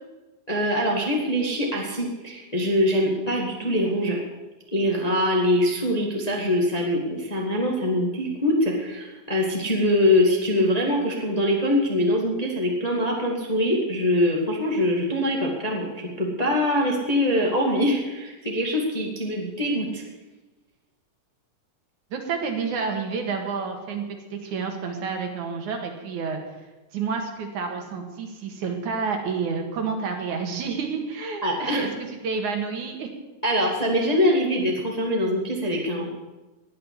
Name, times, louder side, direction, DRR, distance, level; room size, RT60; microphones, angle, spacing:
voice 1, 0.5-4.2 4.7-20.0 31.4-31.9 33.4-36.1, left 1 dB, 15° left, -1 dB, 1.4 m, -23 dB
voice 2, 22.1-24.0 24.3-26.4 26.9-31.9 32.2-33.1, right 5 dB, 70° right, 4 dB, 3.0 m, -29 dB
19.5 x 6.7 x 8.7 m, 1.1 s
omnidirectional pair, 3.8 m